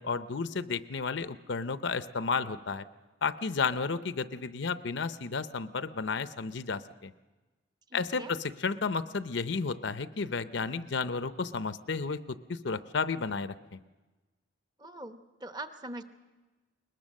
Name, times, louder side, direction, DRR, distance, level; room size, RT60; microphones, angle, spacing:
voice 1, 0.0-2.8 3.2-7.1 7.9-13.8, left 4 dB, 65° left, 12 dB, 0.6 m, -32 dB
voice 2, 7.9-8.3 14.8-16.0, right 1 dB, 20° right, 8 dB, 0.9 m, -42 dB
21.5 x 20.5 x 6.5 m, 1.2 s
head